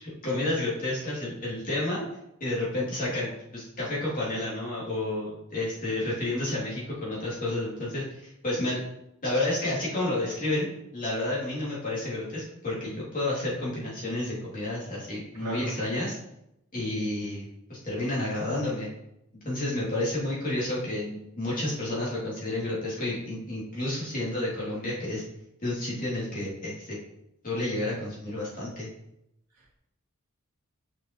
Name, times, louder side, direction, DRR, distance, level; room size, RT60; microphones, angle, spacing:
voice 1, 0.2-2.0 2.4-8.8 9.2-10.7 10.9-16.2 16.7-18.9 19.4-25.2 25.6-27.0 27.4-28.9, left 1 dB, 40° left, -6 dB, 2.6 m, -30 dB
voice 2, 15.3-15.7 29.6-29.8, right 1 dB, 75° right, -4 dB, 1.9 m, -36 dB
6.6 x 5.6 x 3.0 m, 0.82 s
head